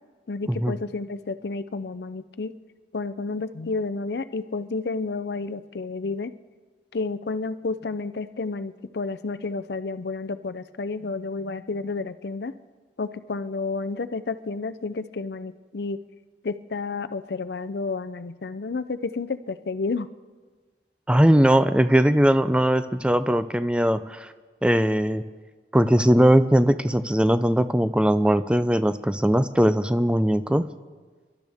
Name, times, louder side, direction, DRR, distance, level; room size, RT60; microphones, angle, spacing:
voice 1, 0.3-2.5 2.9-6.3 6.9-12.5 13.0-16.0 16.4-20.1, left 3 dB, 70° left, 13 dB, 0.5 m, -31 dB
voice 2, 21.1-24.3 24.6-25.2 25.7-30.7, equal, 5° right, 11 dB, 0.4 m, -20 dB
28.0 x 12.0 x 3.5 m, 1.4 s
head